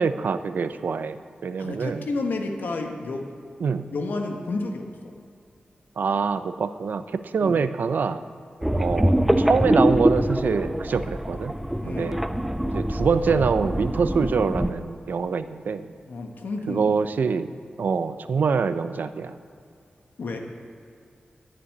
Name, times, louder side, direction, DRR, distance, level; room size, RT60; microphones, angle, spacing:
voice 1, 0.0-2.1 3.6-3.9 6.0-8.2 8.8-11.5 11.9-12.2 12.7-15.9 16.7-17.5 17.8-19.4, right 5 dB, 75° right, 11 dB, 0.5 m, -25 dB
voice 2, 1.6-3.3 3.6-5.1 7.4-7.6 11.8-12.2 16.1-16.9 20.2-20.4, left 3 dB, 90° left, 3 dB, 1.2 m, -31 dB
sound 1, 8.6-14.7, equal, 5° right, 0.5 m, -24 dB
11.0 x 6.9 x 9.6 m, 2.4 s
wide cardioid pair, 140°, 3 cm